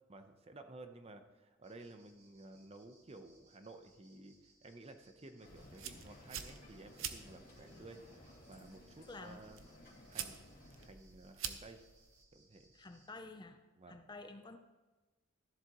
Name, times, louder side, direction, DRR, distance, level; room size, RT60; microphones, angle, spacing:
voice 1, 0.1-4.4 4.6-9.6 10.1-10.4 10.8-11.8 12.3-12.7 13.8-14.0, right 2 dB, 30° right, 8 dB, 0.8 m, -54 dB
sound 1, 1.6-13.1, right 3 dB, 55° right, 3.2 m, -70 dB
Male speech man speaking, 5.4-10.9, left 1 dB, 45° left, 2.6 m, -58 dB
sound 2, 5.4-12.2, right 8 dB, 85° right, 0.8 m, -48 dB
voice 2, 9.0-9.4 12.7-13.6 13.9-14.6, left 3 dB, 20° left, 8 dB, 0.6 m, -50 dB
13.5 x 11.5 x 3.0 m, 1.2 s
head